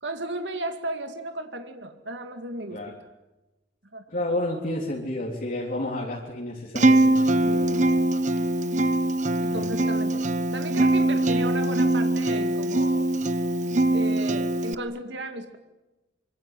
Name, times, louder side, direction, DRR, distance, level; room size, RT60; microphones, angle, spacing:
voice 1, 0.0-2.8 3.9-4.0 9.4-10.2 10.5-13.1 13.9-15.6, right 2 dB, 70° right, 6 dB, 2.3 m, -34 dB
voice 2, 4.1-7.9 9.5-9.6, left 1 dB, 50° left, -1 dB, 3.8 m, -31 dB
Acoustic guitar, 6.8-14.7, right 1 dB, 40° right, 1.2 m, -22 dB
25.5 x 25.0 x 9.2 m, 1.1 s
head